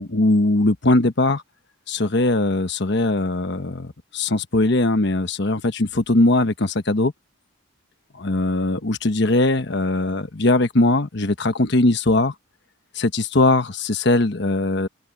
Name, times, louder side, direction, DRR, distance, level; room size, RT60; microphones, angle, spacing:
voice 1, 0.0-1.4 1.9-7.1 8.1-12.3 12.9-14.9, left 2 dB, 55° left, 1.2 m, -20 dB
open air
head